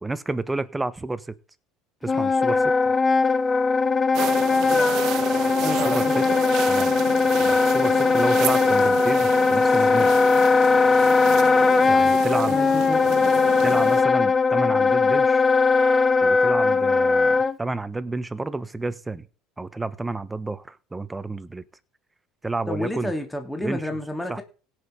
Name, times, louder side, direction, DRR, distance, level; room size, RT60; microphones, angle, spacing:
voice 1, 0.0-1.3 2.0-2.7 5.8-6.2 6.7-7.0 7.3-10.2 11.9-12.6 13.6-15.4 16.2-19.3 19.6-21.6 22.4-23.1 23.6-23.8 24.3-24.4, right 2 dB, 15° right, 1.3 m, -30 dB
Wind instrument woodwind instrument, 2.0-17.5, left 4 dB, 25° left, 0.9 m, -19 dB
sound 1, 4.1-14.0, right 12 dB, 60° right, 1.6 m, -32 dB
voice 2, 5.6-6.3 12.5-13.5 22.7-24.4, left 1 dB, 10° left, 3.0 m, -31 dB
17.0 x 6.6 x 5.3 m
supercardioid pair, 90°, 0 cm